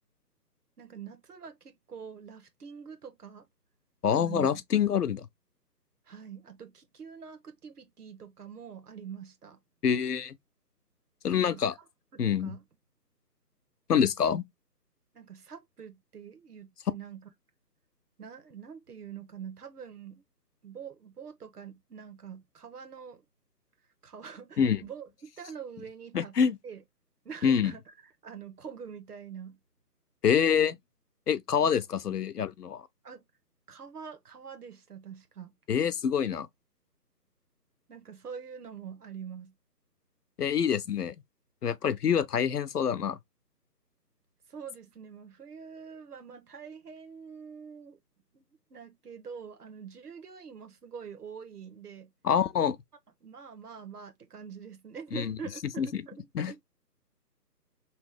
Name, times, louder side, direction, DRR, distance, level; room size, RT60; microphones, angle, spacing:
voice 1, 0.8-3.5 4.1-4.6 6.1-9.6 11.3-11.6 12.1-12.6 15.1-17.3 18.2-20.2 20.6-23.2 24.0-26.3 26.6-26.8 27.2-29.6 31.6-31.7 32.1-32.2 33.0-33.2 33.7-35.5 37.9-39.5 44.5-48.0 48.3-52.1 53.2-56.6, right 7 dB, 65° right, 1.0 m, -45 dB
voice 2, 4.0-5.3 9.8-10.3 11.2-11.7 12.2-12.5 13.9-14.4 24.6-24.8 26.1-26.6 27.4-27.7 30.2-30.8 31.3-32.8 35.7-36.5 40.4-41.1 41.6-43.2 52.2-52.8 55.1-55.3 55.8-56.0 56.3-56.5, left 7 dB, 70° left, 0.6 m, -26 dB
3.2 x 3.1 x 3.4 m
figure-of-eight pair, 165°, 49 cm